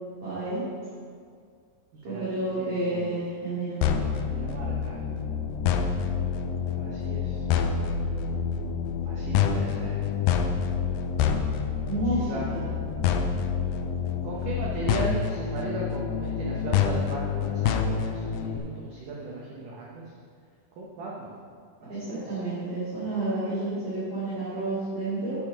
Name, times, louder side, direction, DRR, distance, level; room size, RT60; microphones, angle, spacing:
voice 1, 0.2-0.6 2.0-4.0 11.9-12.7 21.9-25.4, right 2 dB, 40° right, -12 dB, 3.1 m, -30 dB
voice 2, 2.0-3.4 4.2-5.0 6.7-7.5 9.0-10.1 11.9-12.5 14.2-20.0 20.8-21.4 21.8-22.4, right 3 dB, 75° right, -3 dB, 1.9 m, -37 dB
sound 1, 3.8-18.6, left 7 dB, 85° left, 2.4 m, -27 dB
8.8 x 7.2 x 5.0 m, 2.1 s
omnidirectional pair, 5.1 m